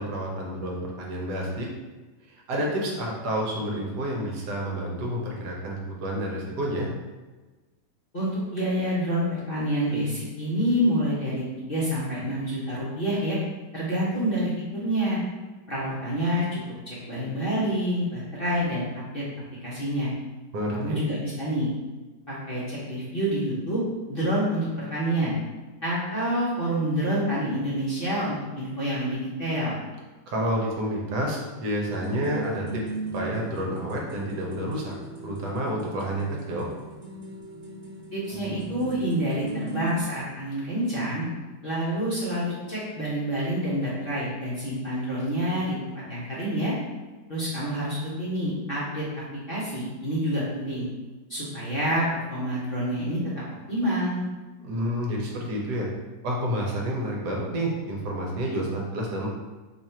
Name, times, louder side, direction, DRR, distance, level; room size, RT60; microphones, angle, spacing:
voice 1, 0.0-1.7 2.5-6.9 20.5-21.0 30.3-32.8 33.1-34.9 35.2-36.7 54.6-55.9 56.2-59.3, equal, 75° right, -2 dB, 1.3 m, -29 dB
voice 2, 8.1-13.4 13.7-15.2 15.7-16.6 16.9-18.8 19.1-19.2 19.6-20.1 20.7-21.7 22.3-23.8 24.1-25.3 25.8-29.8 38.1-41.3 41.6-46.7 47.3-49.0 49.5-50.9 51.3-53.2 53.7-54.2, equal, 45° left, -10 dB, 0.8 m, -27 dB
sound 1, 31.8-40.0, right 3 dB, 50° right, 1.0 m, -38 dB
3.0 x 2.4 x 4.2 m, 1.3 s
omnidirectional pair, 1.9 m